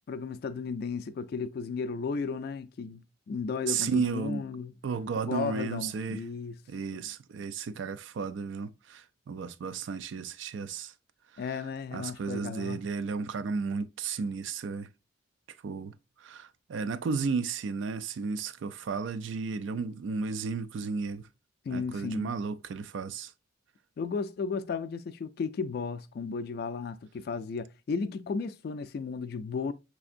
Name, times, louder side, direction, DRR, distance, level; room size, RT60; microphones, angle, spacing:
voice 1, 0.1-4.7 5.2-6.6 6.9-7.0 11.4-12.8 21.7-22.4 24.0-29.7, left 5 dB, 55° left, 0.3 m, -34 dB
voice 2, 3.7-4.4 4.8-6.2 6.7-10.9 11.3-11.4 11.9-14.9 15.6-21.3 21.7-23.3, right 5 dB, 80° right, 0.4 m, -33 dB
5.7 x 3.4 x 2.5 m
head